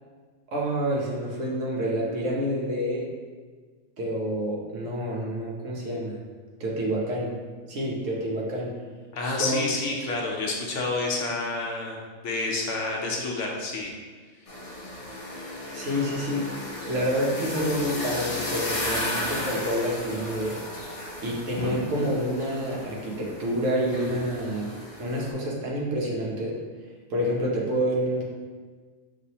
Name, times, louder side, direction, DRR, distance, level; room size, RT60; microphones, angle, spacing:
voice 1, 0.5-3.1 4.0-6.2 6.6-7.3 7.7-8.7 9.2-9.9 15.7-16.6 16.9-20.6 21.2-26.6 27.1-28.2, equal, 65° right, -4 dB, 1.2 m, -28 dB
voice 2, 9.1-13.9, left 3 dB, 65° left, -2 dB, 1.0 m, -29 dB
sound 1, 14.5-25.3, left 1 dB, 45° left, 0.4 m, -34 dB
6.1 x 2.7 x 2.8 m, 1.5 s
omnidirectional pair, 1.4 m